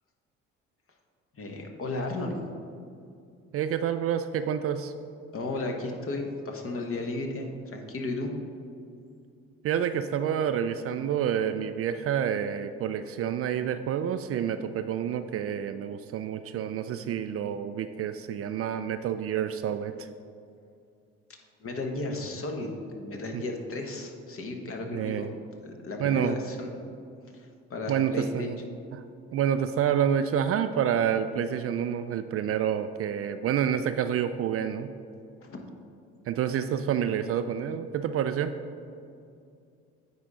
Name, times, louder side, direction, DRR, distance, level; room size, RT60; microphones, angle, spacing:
voice 1, 1.3-2.4 5.3-8.3 21.6-25.3 25.6-26.7 27.3-28.5 35.4-35.6, left 2 dB, 40° left, 3 dB, 1.2 m, -34 dB
voice 2, 3.5-4.9 9.6-20.1 24.9-25.3 26.0-26.4 27.9-28.6 28.9-29.0 29.3-34.9 36.3-38.5, right 9 dB, 45° right, 10 dB, 0.4 m, -28 dB
9.1 x 4.2 x 4.9 m, 2.4 s
hypercardioid pair, 55°, 33 cm